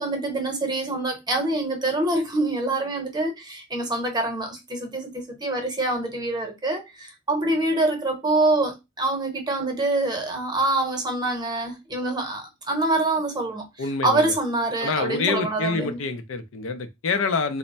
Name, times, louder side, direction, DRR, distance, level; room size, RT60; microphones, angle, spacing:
voice 1, 0.0-16.0, right 2 dB, 20° right, 0.8 m, -25 dB
voice 2, 13.8-14.3 14.8-17.6, left 4 dB, 85° left, 0.5 m, -26 dB
3.3 x 2.1 x 4.0 m
head